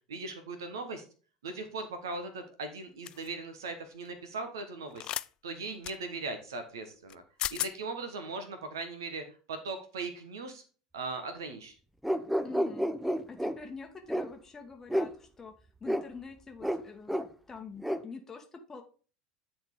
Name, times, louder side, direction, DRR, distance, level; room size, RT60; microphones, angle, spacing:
voice 1, 0.1-1.0 1.4-5.1 5.4-7.2 7.5-10.6 10.9-11.7, right 3 dB, 70° right, 8 dB, 1.2 m, -39 dB
sound 1, 3.1-3.3 5.0-5.3 5.8-6.0 7.1-7.2 7.4-7.7, left 12 dB, 40° left, 0.4 m, -34 dB
sound 2, 12.0-13.6 14.1-14.3 14.9-15.1 15.9-16.0 16.6-16.8 17.1-17.3 17.8-18.0, equal, 5° right, 0.7 m, -30 dB
voice 2, 12.4-12.9 13.3-17.2 17.5-18.8, left 4 dB, 20° left, 4 dB, 1.1 m, -46 dB
10.0 x 4.4 x 4.9 m, 0.38 s
figure-of-eight pair, 70°, 2 cm